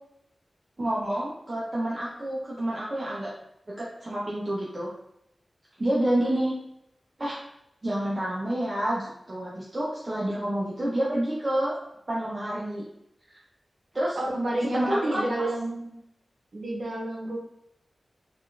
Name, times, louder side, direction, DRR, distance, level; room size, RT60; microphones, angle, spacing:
voice 1, 0.8-3.3 3.7-4.9 5.8-6.5 7.2-7.4 7.8-11.8 12.1-12.8 13.3-13.4 13.9-14.2 14.7-15.3, right 1 dB, 30° right, -6 dB, 0.6 m, -28 dB
voice 2, 14.2-15.9 16.5-17.4, right 1 dB, 60° right, -2 dB, 0.9 m, -29 dB
4.1 x 2.4 x 3.2 m, 0.79 s
wide cardioid pair, 110°, 0 cm